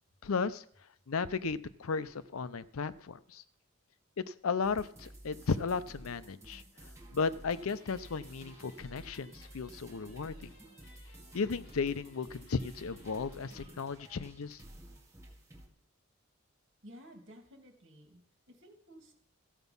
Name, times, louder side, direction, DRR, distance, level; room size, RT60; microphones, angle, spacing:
voice 1, 0.2-0.6 1.1-3.4 4.2-10.3 11.3-14.6, left 5 dB, 80° left, 15 dB, 0.6 m, -35 dB
sound 1, 4.6-15.7, right 1 dB, 15° right, 2.0 m, -53 dB
sound 2, 7.4-13.8, left 1 dB, 60° left, 3.5 m, -61 dB
voice 2, 16.8-19.1, equal, 55° right, 3 dB, 2.6 m, -54 dB
14.0 x 8.1 x 5.4 m, 0.63 s
head